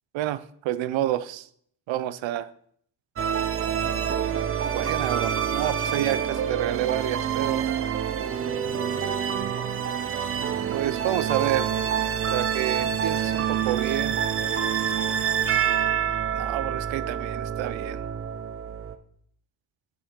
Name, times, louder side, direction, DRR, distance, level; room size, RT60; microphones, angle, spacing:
voice 1, 0.1-1.5 1.9-2.5 4.7-7.7 10.7-11.7 12.3-14.2 16.3-18.0, right 13 dB, 90° right, 15 dB, 0.5 m, -29 dB
sound 1, 3.2-18.9, right 8 dB, 30° right, 0.4 m, -27 dB
6.9 x 6.0 x 3.6 m, 0.64 s
wide cardioid pair, 165°, 45 cm